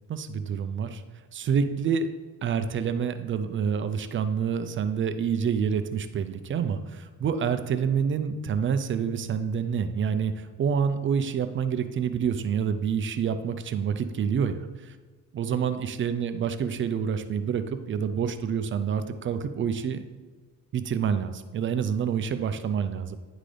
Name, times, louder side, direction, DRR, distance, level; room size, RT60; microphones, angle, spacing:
voice 1, 0.1-1.0 1.3-2.1 2.4-14.6 14.8-15.0 15.3-20.0 20.7-23.2, right 7 dB, 40° right, 10 dB, 0.5 m, -27 dB
9.9 x 3.8 x 3.3 m, 1.4 s
cardioid pair, 110°, 31 cm